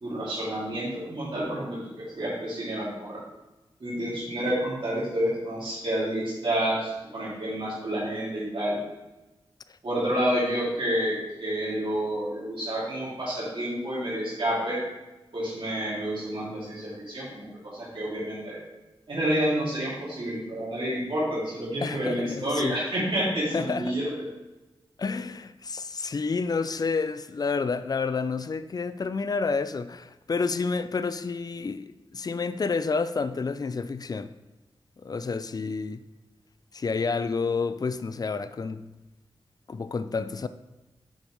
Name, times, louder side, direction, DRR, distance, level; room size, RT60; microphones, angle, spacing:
voice 1, 0.0-3.2 3.8-8.8 9.8-14.8 15.3-17.5 17.7-18.6 19.1-24.1, right 1 dB, 60° right, 2.3 m, -29 dB
voice 2, 21.8-22.8 23.5-24.0 25.0-34.3 35.0-36.0 36.7-38.9 39.7-40.5, left 4 dB, 40° left, 0.4 m, -29 dB
7.3 x 5.3 x 3.1 m
cardioid pair, 55°, 10 cm